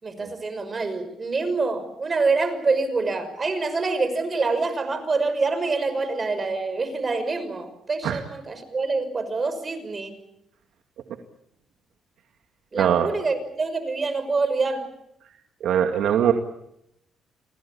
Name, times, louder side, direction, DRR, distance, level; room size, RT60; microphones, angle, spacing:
voice 1, 0.0-10.2 12.7-14.8, right 3 dB, 35° right, 11 dB, 5.9 m, -26 dB
voice 2, 12.8-13.1 15.6-16.3, right 9 dB, 80° right, 4 dB, 2.2 m, -21 dB
29.5 x 20.0 x 8.7 m, 0.80 s
cardioid pair, 85°, 0 cm